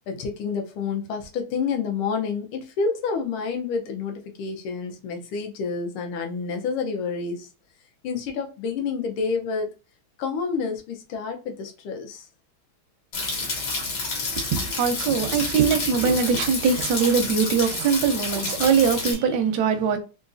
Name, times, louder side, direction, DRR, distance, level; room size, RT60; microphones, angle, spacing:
voice 1, 0.1-7.5 8.0-9.7 10.2-12.3, left 5 dB, 90° left, 1.6 m, -29 dB
sound 1, 13.1-19.1, left 3 dB, 55° left, 1.6 m, -29 dB
voice 2, 14.3-20.0, right 6 dB, 70° right, 1.0 m, -22 dB
3.9 x 2.4 x 2.5 m
omnidirectional pair, 2.3 m